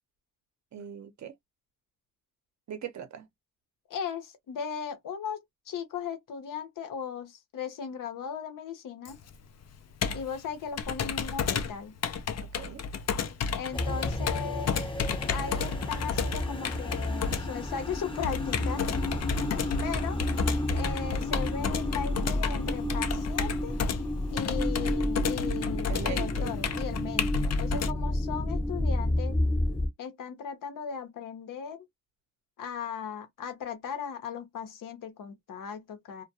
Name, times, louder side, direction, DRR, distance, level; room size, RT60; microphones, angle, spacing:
voice 1, 0.7-1.3 2.7-3.3 12.6-12.8 25.9-26.5, right 8 dB, 60° right, 0.7 m, -40 dB
voice 2, 3.9-9.2 10.1-11.9 13.5-14.8 15.3-18.8 19.8-20.2 20.7-23.8 24.3-29.4 30.0-31.8 32.6-36.2, left 7 dB, 80° left, 0.8 m, -37 dB
Computer keyboard, 9.0-27.9, left 6 dB, 55° left, 0.5 m, -32 dB
sound 1, 13.7-29.9, left 1 dB, 15° left, 0.7 m, -31 dB
2.2 x 2.2 x 2.7 m
cardioid pair, 60°, 32 cm